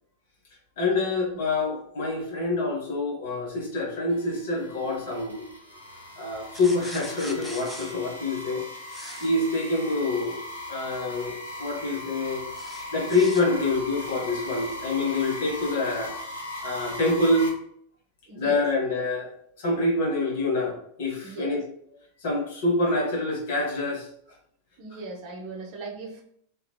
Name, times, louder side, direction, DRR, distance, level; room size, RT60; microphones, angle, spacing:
voice 1, 0.8-5.4 6.2-8.6 9.2-10.4 10.7-12.4 12.9-16.1 16.6-17.5 18.4-19.3 19.6-21.7 22.2-24.1, left 2 dB, 55° left, -1 dB, 0.9 m, -26 dB
sound 1, 4.1-17.5, left 1 dB, 90° left, 0.8 m, -39 dB
sound 2, 6.5-7.9 8.9-9.3 12.6-13.4, left 1 dB, 5° left, 0.4 m, -41 dB
voice 2, 18.3-18.7 21.2-21.6 24.8-26.2, right 3 dB, 45° right, 1 dB, 0.6 m, -38 dB
2.9 x 2.3 x 2.2 m, 0.67 s
figure-of-eight pair, 90°, 0 cm